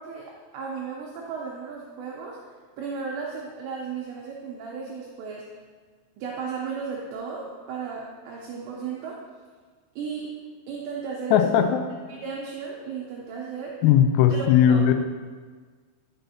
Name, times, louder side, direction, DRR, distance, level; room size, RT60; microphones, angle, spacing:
voice 1, 0.0-2.4 2.8-5.5 6.2-9.2 10.0-10.3 10.7-11.7 12.1-13.8 14.3-14.8, right 5 dB, 85° right, -3 dB, 2.4 m, -35 dB
voice 2, 11.3-11.8 13.8-14.9, left 9 dB, 85° left, 7 dB, 3.1 m, -18 dB
10.0 x 6.9 x 2.8 m, 1.5 s
omnidirectional pair, 6.0 m